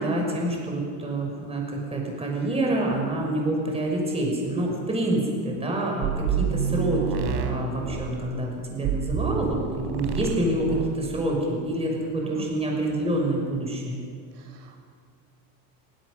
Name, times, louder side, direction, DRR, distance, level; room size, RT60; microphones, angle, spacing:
voice 1, 0.0-14.0, right 1 dB, 15° right, 0 dB, 5.9 m, -27 dB
sound 1, 6.0-8.2 8.8-10.4 10.7-11.0, right 8 dB, 65° right, 3.9 m, -28 dB
voice 2, 14.3-14.8, right 8 dB, 80° right, 3 dB, 6.2 m, -42 dB
24.5 x 24.5 x 6.5 m, 2.1 s
cardioid pair, 160°, 42 cm